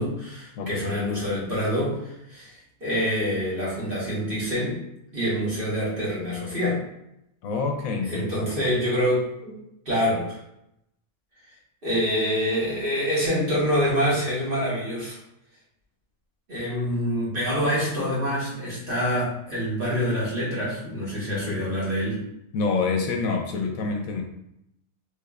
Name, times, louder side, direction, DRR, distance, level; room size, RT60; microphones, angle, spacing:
voice 1, 0.0-4.8 5.1-6.8 8.0-9.5 9.8-10.4 11.8-15.2 16.5-22.2, equal, 40° right, -8 dB, 1.5 m, -26 dB
voice 2, 0.6-0.9 7.4-8.5 22.5-24.2, left 4 dB, 75° left, 2 dB, 1.0 m, -27 dB
3.3 x 3.2 x 2.4 m, 0.81 s
omnidirectional pair, 1.5 m